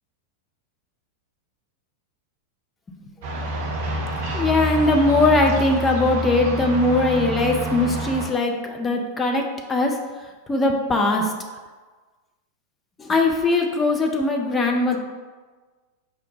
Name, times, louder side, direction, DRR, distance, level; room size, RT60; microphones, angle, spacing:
sound 1, 3.2-8.3, right 2 dB, 50° right, 0.6 m, -27 dB
voice 1, 4.3-9.4 9.7-9.9 10.5-11.3 13.0-15.0, left 2 dB, 15° left, 2 dB, 0.5 m, -20 dB
4.9 x 2.1 x 3.9 m, 1.4 s
figure-of-eight pair, 90°, 0 cm